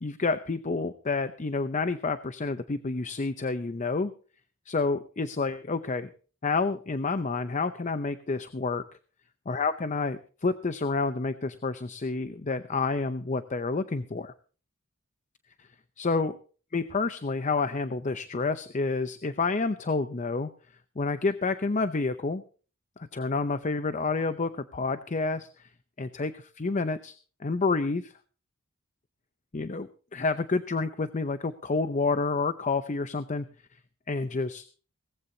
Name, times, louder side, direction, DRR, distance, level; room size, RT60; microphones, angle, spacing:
voice 1, 0.0-4.1 4.7-6.1 6.4-8.8 9.5-14.3 16.0-16.3 16.7-20.5 21.0-22.4 23.0-25.7 26.0-28.1 29.5-33.5 34.1-34.7, left 3 dB, 35° left, 11 dB, 0.6 m, -29 dB
18.0 x 15.0 x 2.8 m, 0.38 s
head